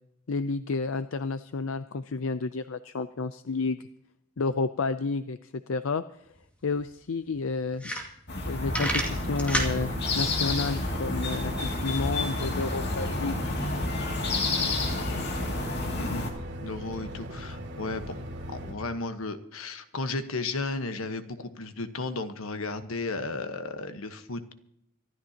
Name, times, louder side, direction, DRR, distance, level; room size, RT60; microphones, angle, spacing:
voice 1, 0.3-3.8 4.4-6.0 6.6-7.8 8.5-13.4 14.7-14.8, left 4 dB, 70° left, 12 dB, 0.5 m, -31 dB
sound 1, 6.4-6.5 6.8-6.9 7.4-7.5 7.7-8.4 8.7-9.7, right 1 dB, 5° left, 2.3 m, -29 dB
sound 2, 8.3-16.3, left 2 dB, 55° left, 2.4 m, -30 dB
sound 3, 8.7-18.7, equal, 60° right, 2.6 m, -39 dB
voice 2, 15.9-16.2 16.6-18.2 18.5-24.5, left 3 dB, 90° left, 9 dB, 1.3 m, -34 dB
25.5 x 13.0 x 2.9 m, 0.76 s
head